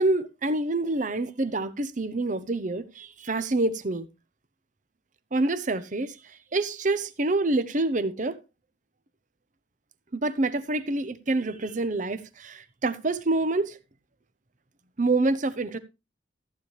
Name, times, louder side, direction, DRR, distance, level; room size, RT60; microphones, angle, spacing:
voice 1, 0.0-4.1 5.3-8.4 10.1-13.8 15.0-15.8, right 2 dB, 40° right, 0.8 m, -27 dB
14.5 x 8.9 x 3.2 m
head